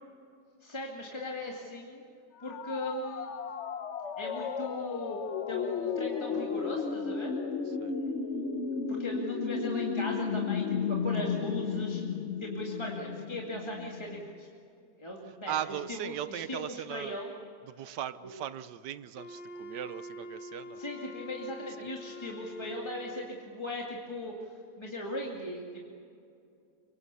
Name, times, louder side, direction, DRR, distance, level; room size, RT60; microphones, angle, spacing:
voice 1, 0.6-2.0 2.4-3.3 4.2-5.2 5.5-7.3 8.9-12.0 12.4-14.5 15.0-15.6 15.9-17.3 18.2-18.3 20.8-25.8, left 1 dB, 15° left, -2 dB, 2.2 m, -38 dB
sound 1, 2.4-14.2, left 6 dB, 50° left, 1.1 m, -34 dB
voice 2, 7.7-8.0 15.5-17.2 17.7-20.8 21.8-21.9, right 11 dB, 80° right, 14 dB, 1.4 m, -38 dB
Wind instrument woodwind instrument, 19.1-23.4, left 1 dB, 80° left, 3.2 m, -45 dB
24.5 x 24.5 x 7.0 m, 2.5 s
omnidirectional pair, 1.8 m